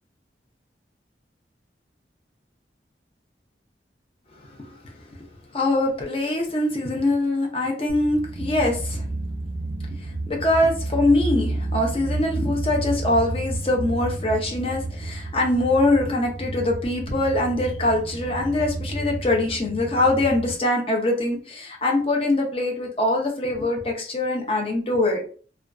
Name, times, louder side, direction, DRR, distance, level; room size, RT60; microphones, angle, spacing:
voice 1, 5.5-9.1 10.3-25.3, left 2 dB, 30° left, 1 dB, 0.5 m, -23 dB
sound 1, 7.9-20.5, right 2 dB, 45° right, 0.5 m, -31 dB
2.5 x 2.3 x 2.2 m, 0.42 s
head